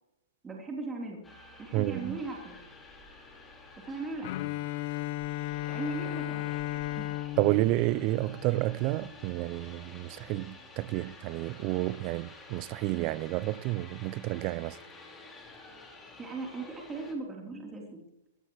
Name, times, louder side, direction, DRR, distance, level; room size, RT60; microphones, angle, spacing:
voice 1, 0.4-1.2 1.6-2.6 3.8-4.3 5.7-7.1 16.2-18.0, right 3 dB, 15° right, 3.6 m, -38 dB
sound 1, 1.2-17.1, left 2 dB, 10° left, 4.6 m, -51 dB
voice 2, 1.7-2.2 7.4-14.8, right 18 dB, 40° right, 0.5 m, -30 dB
Bowed string instrument, 4.2-9.1, left 15 dB, 50° left, 0.8 m, -35 dB
22.5 x 17.0 x 3.2 m
hypercardioid pair, 120°, 0 cm